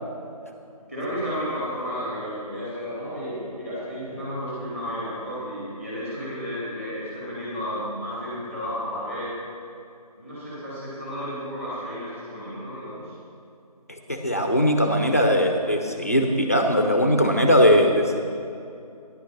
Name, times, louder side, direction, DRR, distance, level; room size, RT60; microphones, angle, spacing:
voice 1, 0.9-9.3 10.2-13.1, equal, 20° right, -9 dB, 2.2 m, -32 dB
voice 2, 14.1-18.2, equal, 25° left, 4 dB, 0.5 m, -20 dB
10.0 x 6.4 x 5.7 m, 2.6 s
figure-of-eight pair, 175°, 20 cm